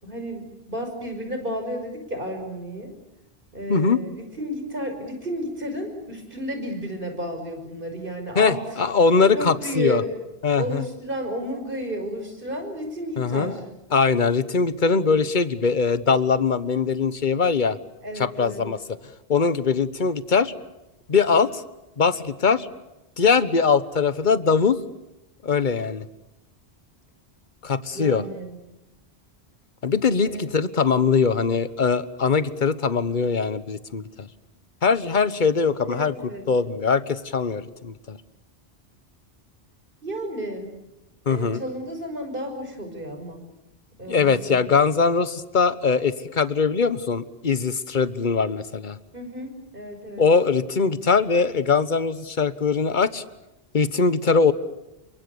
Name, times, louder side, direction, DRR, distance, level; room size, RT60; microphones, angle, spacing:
voice 1, 0.0-2.9 3.5-8.8 9.3-10.1 10.5-13.6 18.0-18.6 27.9-28.6 30.2-30.4 35.9-36.4 40.0-40.7 41.3-43.4 44.0-44.7 49.1-50.2, equal, 55° right, 5 dB, 5.9 m, -32 dB
voice 2, 8.3-10.0 10.4-10.8 13.2-13.6 13.9-17.8 18.2-19.0 19.3-20.5 21.1-21.6 22.0-22.7 23.2-24.8 25.4-26.1 27.6-28.2 29.8-34.3 34.8-36.1 36.5-38.2 41.3-41.6 44.1-49.0 50.2-53.2 53.7-54.5, left 5 dB, 50° left, 14 dB, 1.3 m, -21 dB
29.0 x 24.5 x 7.0 m, 0.94 s
omnidirectional pair, 1.1 m